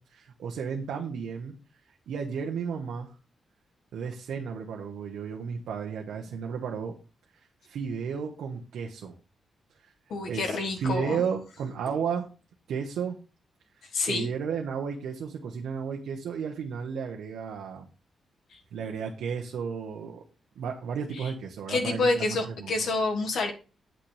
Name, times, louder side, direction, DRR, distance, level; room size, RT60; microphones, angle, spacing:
voice 1, 0.0-1.5 2.1-3.1 3.9-6.9 7.6-9.1 9.8-9.9 10.3-12.3 12.7-13.2 14.1-17.9 18.7-20.2 20.6-22.7, right 6 dB, 90° right, 1 dB, 1.1 m, -33 dB
voice 2, 10.1-11.2 13.9-14.3 18.5-18.6 21.1-21.3 21.7-23.5, left 3 dB, 70° left, 3 dB, 1.6 m, -28 dB
8.9 x 7.8 x 3.3 m, 0.34 s
cardioid pair, 130°, 0 cm